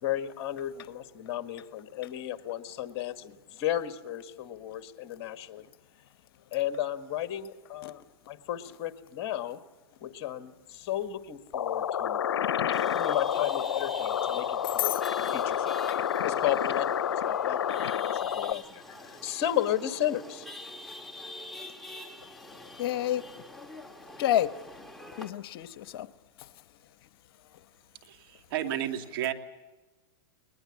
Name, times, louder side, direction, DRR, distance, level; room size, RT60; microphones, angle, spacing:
voice 1, 0.0-5.7 6.5-8.0 8.3-9.6 10.0-12.3 12.8-15.8 16.2-20.5, left 12 dB, 45° left, 10 dB, 1.8 m, -34 dB
sound 1, 11.5-18.5, left 9 dB, 90° left, 0.7 m, -29 dB
Chatter / Vehicle horn car horn honking / Traffic noise roadway noise, 12.7-25.3, left 1 dB, ahead, 1.9 m, -45 dB
voice 2, 14.6-15.0 15.9-16.0 22.8-23.2 24.2-24.5 25.2-26.1 26.4-26.5, left 12 dB, 65° left, 14 dB, 1.1 m, -29 dB
voice 3, 28.0-29.3, right 11 dB, 60° right, 7 dB, 2.5 m, -32 dB
21.0 x 20.5 x 8.4 m, 1.2 s
hypercardioid pair, 125°, 13 cm